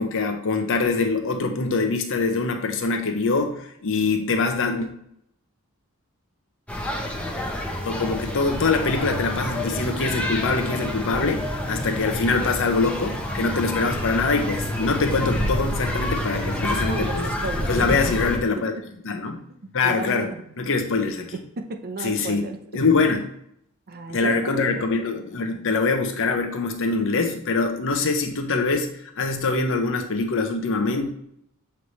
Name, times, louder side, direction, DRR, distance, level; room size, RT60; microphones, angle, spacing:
voice 1, 0.0-4.9 7.8-17.2 17.7-18.7 19.0-19.4 19.7-20.3 20.6-21.4 22.0-22.4 22.7-23.3 24.1-28.9 29.2-31.1, left 4 dB, 60° left, 5 dB, 0.9 m, -24 dB
sound 1, 6.7-18.4, left 1 dB, 5° left, 0.8 m, -28 dB
voice 2, 16.5-18.0 18.7-18.8 19.8-20.4 21.3-22.6 23.9-24.8, right 3 dB, 45° right, 5 dB, 0.7 m, -34 dB
7.4 x 3.3 x 4.1 m, 0.71 s
head